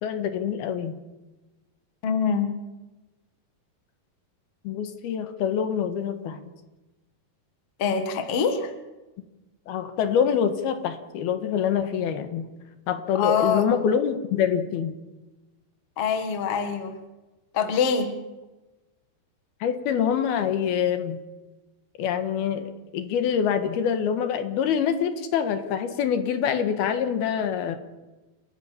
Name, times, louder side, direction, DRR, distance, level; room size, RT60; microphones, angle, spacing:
voice 1, 0.0-0.9 4.6-6.4 9.7-12.5 12.9-14.9 19.6-21.2 22.0-27.8, left 8 dB, 75° left, 9 dB, 3.2 m, -25 dB
voice 2, 2.0-2.5 7.8-8.7 13.1-13.7 16.0-17.0 17.5-18.1, left 6 dB, 50° left, 7 dB, 2.1 m, -24 dB
29.0 x 14.0 x 7.3 m, 1.1 s
omnidirectional pair, 4.7 m